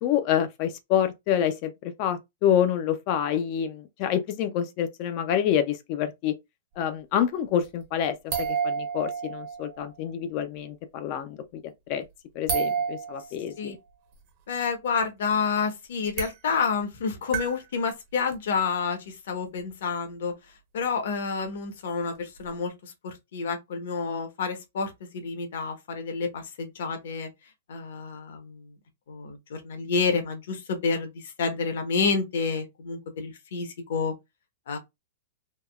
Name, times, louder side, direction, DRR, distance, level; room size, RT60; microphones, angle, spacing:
voice 1, 0.0-6.3 6.8-11.6 11.9-12.0 12.4-13.8, left 9 dB, 35° left, 0.4 m, -27 dB
sound 1, 7.6-7.8 8.3-9.8 12.5-13.3 15.0-15.1 15.3-15.4 16.1-16.3 17.3-17.7 18.3-18.4 22.4-22.5, right 6 dB, 35° right, 0.7 m, -29 dB
voice 2, 14.5-20.3 20.7-27.3 27.7-28.6 29.1-31.1 31.4-34.1 34.7-34.8, left 5 dB, 60° left, 0.9 m, -29 dB
3.4 x 2.2 x 2.2 m
hypercardioid pair, 165°, 0 cm